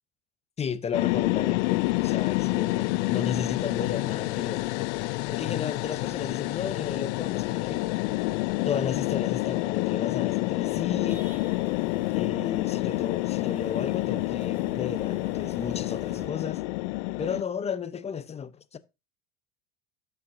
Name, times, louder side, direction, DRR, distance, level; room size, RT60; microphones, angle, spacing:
voice 1, 0.6-1.6 2.0-4.7 5.3-7.9 8.6-11.3 12.1-16.6 17.2-18.8, left 7 dB, 20° left, 0.6 m, -33 dB
sound 1, 0.9-17.4, left 21 dB, 70° left, 0.5 m, -28 dB
sound 2, 11.1-16.3, right 1 dB, 5° right, 3.4 m, -46 dB
12.5 x 5.8 x 2.6 m
supercardioid pair, 105°, 36 cm